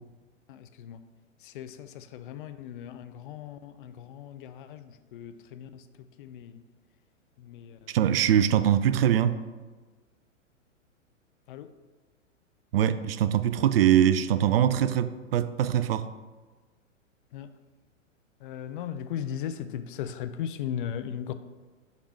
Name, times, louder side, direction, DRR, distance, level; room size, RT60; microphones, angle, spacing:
voice 1, 0.5-1.0 1.4-5.8 6.2-6.5 7.4-8.0 11.5-11.7 17.3-17.5 18.4-21.3, left 9 dB, 45° left, 0.5 m, -37 dB
voice 2, 7.9-9.4 12.7-16.1, right 10 dB, 50° right, 0.5 m, -23 dB
5.3 x 5.0 x 4.5 m
figure-of-eight pair, 105°, 38 cm